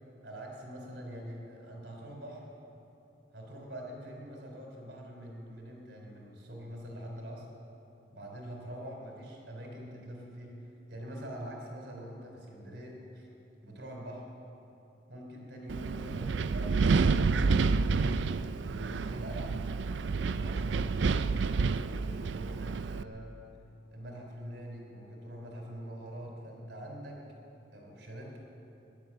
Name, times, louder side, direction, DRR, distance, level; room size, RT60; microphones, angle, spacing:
voice 1, 0.2-2.4 3.3-7.5 8.1-13.3 13.6-14.2 15.1-18.5 18.8-19.6 20.1-21.3 21.8-23.3 23.9-27.2 27.7-28.4, equal, 75° right, 0 dB, 3.5 m, -44 dB
Wind, 15.7-23.0, right 4 dB, 90° right, 0.4 m, -29 dB
17.0 x 11.0 x 7.5 m, 3.0 s
head